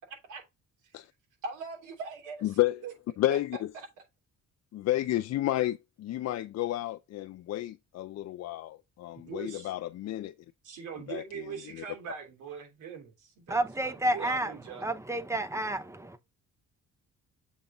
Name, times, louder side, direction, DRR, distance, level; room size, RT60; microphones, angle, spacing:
voice 1, 1.4-2.5 2.8-2.9 3.3-3.4 3.7-3.9 9.2-9.7 10.6-14.9, right 5 dB, 85° right, 3.0 m, -41 dB
voice 2, 2.4-2.8 3.2-3.7 4.7-10.3 11.1-11.4 11.7-11.8, left 14 dB, 60° left, 0.5 m, -31 dB
voice 3, 13.5-16.2, right 1 dB, 10° right, 0.8 m, -31 dB
7.2 x 3.8 x 3.7 m
cardioid pair, 90°, 30 cm